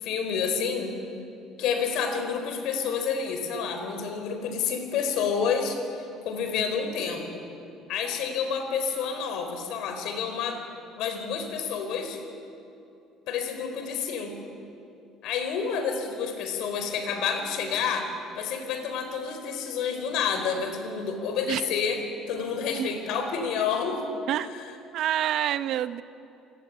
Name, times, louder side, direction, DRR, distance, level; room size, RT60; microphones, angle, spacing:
voice 1, 0.0-0.9 1.6-5.8 6.2-7.4 7.9-10.6 10.9-12.2 13.3-14.4 15.2-22.0 22.3-24.0 24.5-24.7, left 6 dB, 70° left, 6 dB, 4.5 m, -29 dB
voice 2, 24.9-26.0, right 11 dB, 60° right, 13 dB, 0.8 m, -27 dB
27.5 x 18.0 x 9.5 m, 2.7 s
cardioid pair, 140°, 0 cm